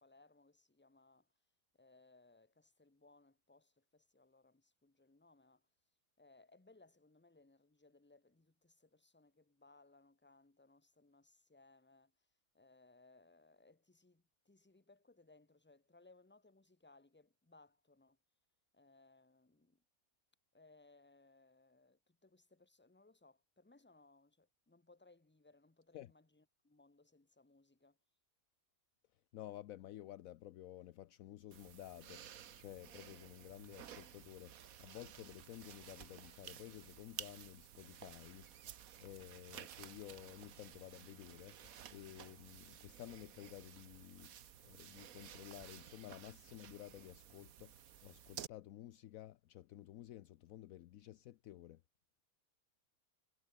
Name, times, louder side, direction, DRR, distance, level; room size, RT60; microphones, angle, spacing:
voice 1, 0.0-1.3 1.7-5.7 6.2-12.1 12.5-18.2 18.7-19.8 20.5-28.0 39.4-39.5, left 3 dB, 10° left, 0.8 m, -67 dB
voice 2, 29.3-44.3 44.6-51.8, left 13 dB, 75° left, 1.0 m, -53 dB
sound 1, 31.5-48.5, right 9 dB, 75° right, 1.4 m, -54 dB
omnidirectional pair, 1.5 m